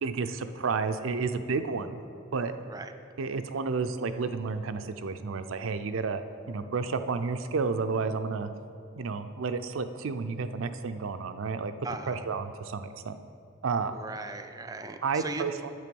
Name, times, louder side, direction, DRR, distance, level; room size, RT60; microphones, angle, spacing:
voice 1, 0.0-2.0 2.3-2.5 3.2-6.2 6.5-8.5 9.0-11.7 12.1-13.2 13.6-13.9 15.0-15.7, right 4 dB, 85° right, 9 dB, 0.5 m, -31 dB
voice 2, 11.8-12.2 13.9-15.4, right 3 dB, 20° right, 7 dB, 0.4 m, -38 dB
9.5 x 7.6 x 5.3 m, 2.5 s
head